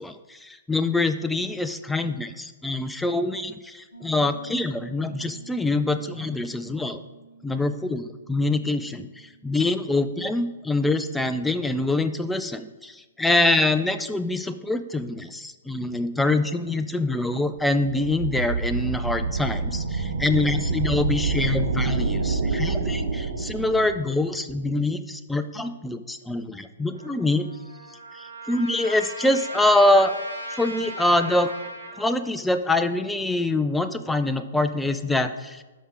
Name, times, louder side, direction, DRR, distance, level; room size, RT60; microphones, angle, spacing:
voice 1, 0.0-7.0 7.4-27.5 28.1-30.1 30.5-31.5 32.0-35.6, left 2 dB, 5° left, 9 dB, 0.4 m, -25 dB
Piano, 3.9-12.4, right 3 dB, 90° left, 0.9 m, -50 dB
sound 1, 17.6-24.1, right 4 dB, 60° right, 0.8 m, -27 dB
Trumpet, 26.9-32.1, equal, 75° right, 1.7 m, -37 dB
12.5 x 4.7 x 3.6 m, 1.2 s
figure-of-eight pair, 115°, 0 cm